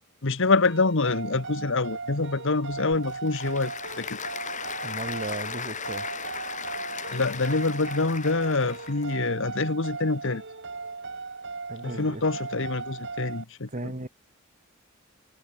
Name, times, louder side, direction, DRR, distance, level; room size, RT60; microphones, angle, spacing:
voice 1, 0.2-4.2 7.1-10.4 11.8-13.9, left 3 dB, 60° left, 1.2 m, -26 dB
sound 1, 0.6-13.4, right 4 dB, 55° right, 3.7 m, -38 dB
Applause / Crowd, 2.7-9.2, left 6 dB, 35° left, 4.7 m, -37 dB
voice 2, 4.8-6.1 11.7-12.2 13.7-14.1, right 2 dB, 35° right, 1.7 m, -35 dB
head